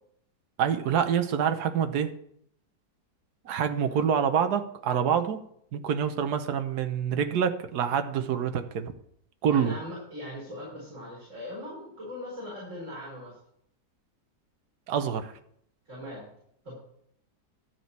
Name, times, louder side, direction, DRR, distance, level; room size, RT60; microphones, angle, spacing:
voice 1, 0.6-2.1 3.4-5.4 5.7-8.9 9.4-9.7 14.9-15.3, right 7 dB, 80° right, 8 dB, 1.4 m, -26 dB
voice 2, 9.5-13.3 15.9-16.3 16.6-16.8, left 1 dB, 50° right, -6 dB, 5.1 m, -40 dB
12.5 x 4.5 x 8.1 m, 0.70 s
omnidirectional pair, 1.7 m